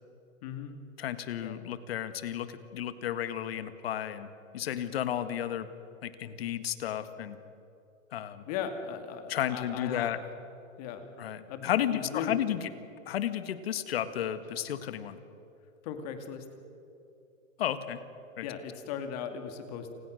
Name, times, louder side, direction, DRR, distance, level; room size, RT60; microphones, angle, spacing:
voice 1, 0.4-0.8 1.4-1.6 8.5-10.2 10.8-11.1 11.5-12.4 15.8-16.4 18.4-19.9, left 7 dB, 30° left, 7 dB, 2.4 m, -38 dB
voice 2, 1.0-4.3 4.5-5.7 6.0-7.4 8.1-8.4 9.3-10.2 11.2-12.7 13.1-15.2 17.6-18.0 18.4-18.5, left 10 dB, 45° left, 11 dB, 1.8 m, -33 dB
28.5 x 26.5 x 6.5 m, 2.8 s
hypercardioid pair, 170°, 40 cm